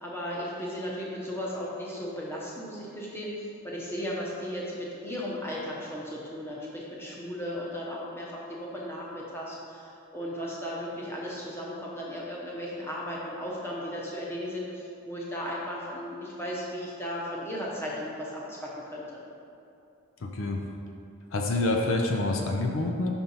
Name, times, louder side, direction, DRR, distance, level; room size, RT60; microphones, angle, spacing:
voice 1, 0.0-19.2, equal, 10° left, -4 dB, 0.9 m, -36 dB
voice 2, 20.2-20.6 21.3-23.1, left 2 dB, 65° left, 2 dB, 0.5 m, -27 dB
5.4 x 4.4 x 5.4 m, 2.7 s
head